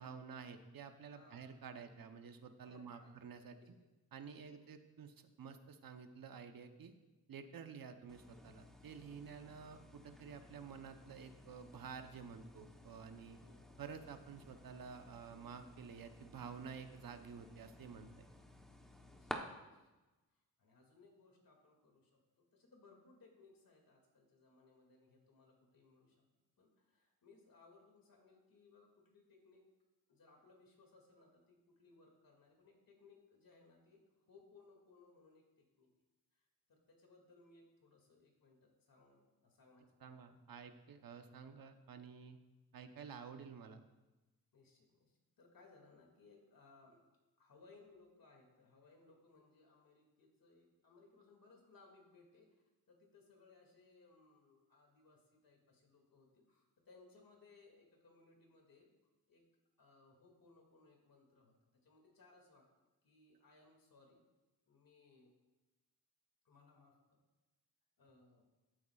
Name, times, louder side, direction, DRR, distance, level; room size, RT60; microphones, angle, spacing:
voice 1, 0.0-3.6 4.1-6.9 7.3-13.4 13.8-18.3 40.0-42.4 42.7-43.8, right 6 dB, 70° right, 7 dB, 0.9 m, -51 dB
voice 2, 2.6-3.1 3.6-3.7 4.3-4.7 7.7-7.8 9.6-9.8 13.4-13.8 19.0-19.9 20.3-26.2 26.6-29.7 30.1-35.9 36.3-40.1 44.5-47.0 47.4-52.5 52.9-58.9 59.3-59.4 59.8-61.6 61.8-62.7 63.0-64.2 64.7-65.3 66.4-67.0 68.0-68.5, left 3 dB, 65° left, 1 dB, 2.3 m, -66 dB
sound 1, 8.1-19.4, equal, ahead, 0.9 m, -55 dB
14.0 x 8.2 x 2.4 m, 1.1 s
cardioid pair, 80°, 36 cm